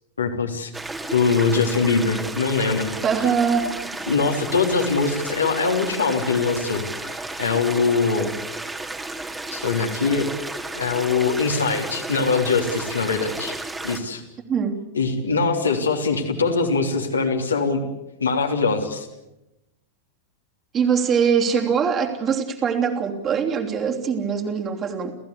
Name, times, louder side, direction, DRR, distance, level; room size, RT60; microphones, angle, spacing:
voice 1, 0.2-0.7 1.1-2.9 4.1-8.3 9.5-10.3 10.7-13.5 13.8-14.2 14.9-17.9 18.2-19.1, left 4 dB, 75° left, 2 dB, 3.3 m, -22 dB
sound 1, 0.7-14.0, right 2 dB, 10° right, 2.4 m, -33 dB
voice 2, 3.0-3.7 14.5-14.8 20.7-25.1, right 6 dB, 25° right, 2 dB, 3.2 m, -22 dB
30.0 x 15.5 x 8.4 m, 0.95 s
figure-of-eight pair, 90°, 0 cm